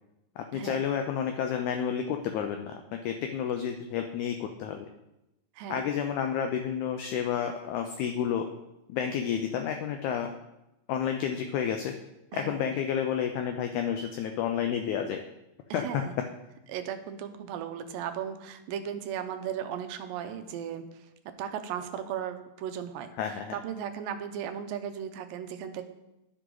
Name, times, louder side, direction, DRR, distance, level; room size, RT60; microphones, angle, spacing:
voice 1, 0.4-4.9 5.7-8.5 8.9-10.3 10.9-11.9 12.3-15.2 15.7-16.0 23.2-23.5, left 8 dB, 85° left, 5 dB, 1.7 m, -30 dB
voice 2, 5.6-5.9 12.3-12.7 15.7-16.1 16.7-21.1 21.4-23.1 23.5-25.8, right 9 dB, 85° right, 7 dB, 2.3 m, -36 dB
11.0 x 6.2 x 3.8 m, 0.94 s
omnidirectional pair, 4.1 m